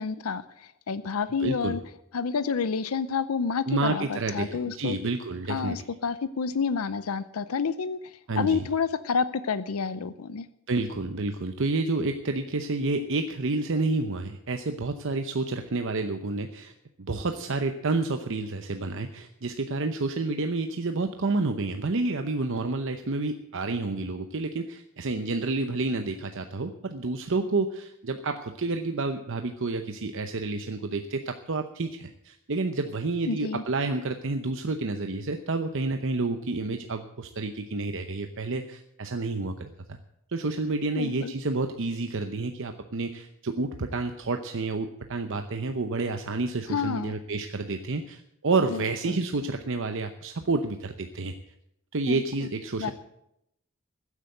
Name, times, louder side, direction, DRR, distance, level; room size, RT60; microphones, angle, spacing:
voice 1, 0.0-1.8 2.1-5.0 5.5-10.5 33.3-33.6 40.9-41.3 46.7-47.1 48.7-49.2 52.1-52.5 52.8-52.9, left 5 dB, 90° left, 14 dB, 0.6 m, -29 dB
voice 2, 1.4-1.8 3.7-5.8 8.3-8.7 10.7-16.7 17.0-40.0 40.3-51.4 51.9-52.9, right 3 dB, 60° right, 7 dB, 0.8 m, -29 dB
15.0 x 8.3 x 7.8 m, 0.81 s
head